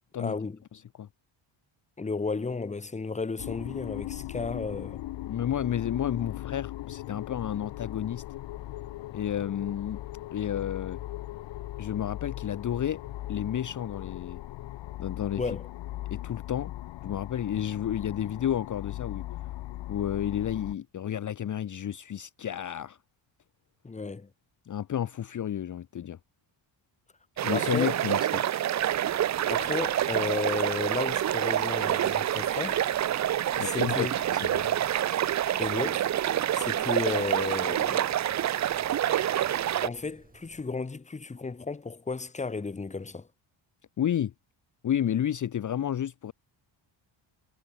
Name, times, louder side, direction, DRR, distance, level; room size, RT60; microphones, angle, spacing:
voice 1, 0.2-0.6 2.0-5.0 15.4-15.6 23.8-24.3 27.5-27.9 29.5-32.8 33.6-34.2 35.6-36.1 36.5-38.1 39.8-43.3, left 4 dB, 15° left, 1.3 m, -33 dB
voice 2, 0.7-1.1 5.3-8.2 9.1-10.0 10.3-11.0 11.8-13.0 13.3-14.4 15.0-15.6 16.1-16.7 17.0-19.2 19.9-23.0 24.7-26.2 27.4-28.5 33.6-34.8 44.0-44.3 44.8-46.3, left 10 dB, 40° left, 0.9 m, -31 dB
sound 1, 3.4-20.8, left 15 dB, 65° left, 0.8 m, -39 dB
sound 2, 27.4-39.9, right 11 dB, 40° right, 0.5 m, -27 dB
sound 3, 28.8-40.6, right 3 dB, 20° right, 5.1 m, -56 dB
cardioid pair, 160°, 47 cm